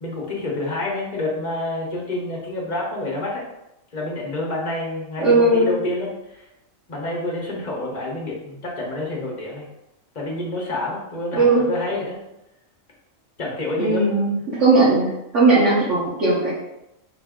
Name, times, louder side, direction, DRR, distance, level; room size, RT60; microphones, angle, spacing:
voice 1, 0.0-3.4 3.9-6.4 6.9-9.7 10.1-12.2 13.4-14.1, left 2 dB, 40° left, -2 dB, 0.9 m, -28 dB
voice 2, 5.2-5.7 11.3-11.6 13.8-16.5, right 2 dB, 65° right, -10 dB, 1.4 m, -18 dB
4.1 x 2.6 x 3.6 m, 0.89 s
omnidirectional pair, 1.4 m